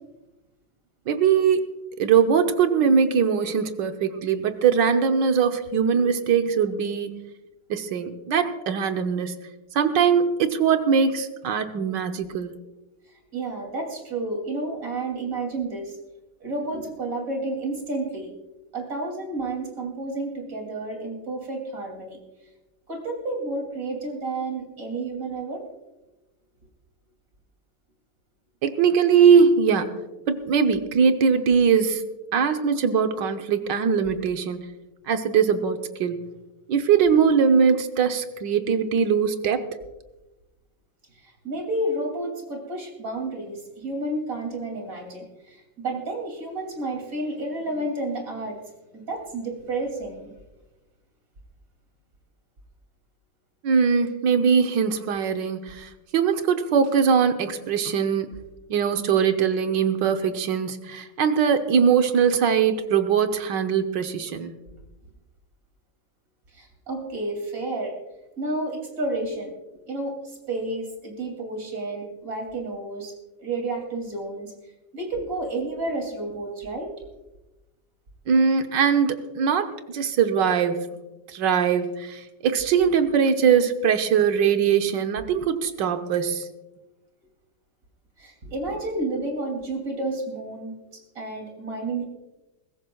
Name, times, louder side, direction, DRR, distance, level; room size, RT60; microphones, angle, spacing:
voice 1, 1.1-1.6 2.0-7.2 7.7-9.3 9.7-12.5 28.6-29.9 30.3-32.0 32.3-34.6 35.1-36.2 36.7-39.7 53.6-58.3 58.7-64.5 78.3-80.9 81.3-86.5, right 6 dB, 70° right, 7 dB, 1.6 m, -21 dB
voice 2, 13.0-16.0 16.4-18.3 18.7-22.2 22.9-25.6 41.1-48.6 48.9-50.3 66.5-67.9 68.4-69.5 69.9-73.1 73.4-74.5 74.9-76.9 88.2-92.0, right 2 dB, 45° right, 2 dB, 3.2 m, -31 dB
21.5 x 16.0 x 2.3 m, 1.1 s
omnidirectional pair, 2.0 m